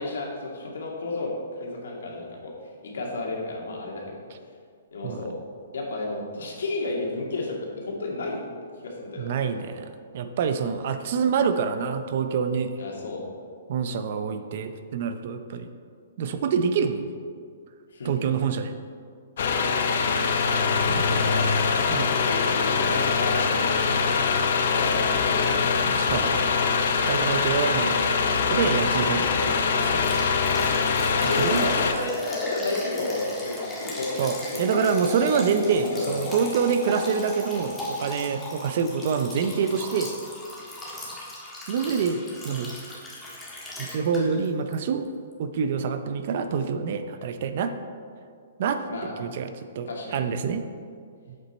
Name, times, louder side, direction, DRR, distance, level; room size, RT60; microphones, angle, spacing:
voice 1, 0.0-4.2 4.9-5.4 5.7-8.4 8.8-9.3 12.8-13.2 17.9-18.3 19.5-19.7 21.0-25.4 30.5-34.9 35.3-36.3 48.9-49.2 49.9-50.2, left 2 dB, 80° left, -1 dB, 2.2 m, -32 dB
voice 2, 9.2-12.7 13.7-15.7 16.2-17.1 18.0-18.7 20.8-21.3 21.9-22.1 25.8-26.5 26.9-28.2 28.5-30.1 31.4-31.7 34.2-40.1 41.7-42.7 43.8-45.1 45.4-47.7 48.6-48.8 49.2-50.6, right 6 dB, 40° right, 9 dB, 0.6 m, -26 dB
sound 1, 19.4-31.9, left 5 dB, 55° left, 0.7 m, -23 dB
Liquid, 30.0-44.5 44.7-44.8 45.3-45.4, left 1 dB, 5° left, 1.4 m, -36 dB
8.0 x 7.8 x 4.3 m, 2.2 s
hypercardioid pair, 170°, 0 cm